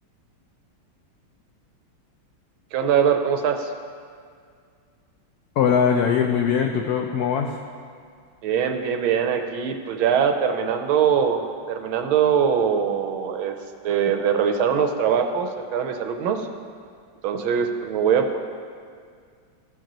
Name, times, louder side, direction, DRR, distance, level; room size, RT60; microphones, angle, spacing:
voice 1, 2.7-3.7 8.4-13.6 13.8-16.5 17.2-18.4, right 7 dB, 80° right, 6 dB, 1.5 m, -22 dB
voice 2, 5.6-7.6, left 7 dB, 85° left, 3 dB, 0.8 m, -21 dB
14.5 x 7.4 x 3.0 m, 2.1 s
omnidirectional pair, 2.2 m